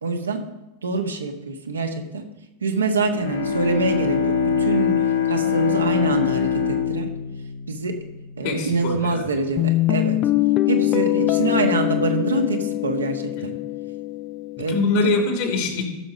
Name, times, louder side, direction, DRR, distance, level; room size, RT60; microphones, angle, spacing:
voice 1, 0.0-0.4 0.8-2.2 2.6-4.9 5.3-7.1 7.7-8.0 8.4-10.2 10.7-13.5 14.6-14.8, right 3 dB, 80° right, 3 dB, 1.5 m, -25 dB
Bowed string instrument, 2.9-8.6, left 7 dB, 80° left, 1.7 m, -23 dB
voice 2, 8.4-9.3 13.3-13.6 14.7-15.8, left 3 dB, 60° left, 2 dB, 3.0 m, -23 dB
Guitar, 9.6-14.6, left 17 dB, 40° left, 0.6 m, -23 dB
15.0 x 6.4 x 5.0 m, 0.96 s
figure-of-eight pair, 90°, 0 cm